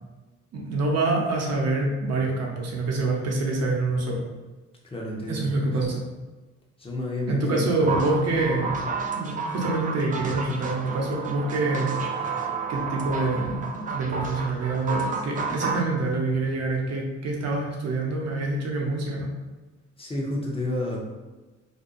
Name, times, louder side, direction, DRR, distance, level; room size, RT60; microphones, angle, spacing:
voice 1, 0.5-4.3 5.3-6.0 7.3-8.8 9.1-12.0 12.3-19.3, right 2 dB, 60° right, -1 dB, 0.7 m, -26 dB
voice 2, 4.8-5.5 6.8-8.0 20.0-21.0, left 1 dB, 20° left, -2 dB, 0.7 m, -30 dB
sound 1, 7.9-15.9, right 4 dB, 30° right, 0.3 m, -31 dB
2.6 x 2.2 x 2.5 m, 1.2 s
cardioid pair, 90°, 30 cm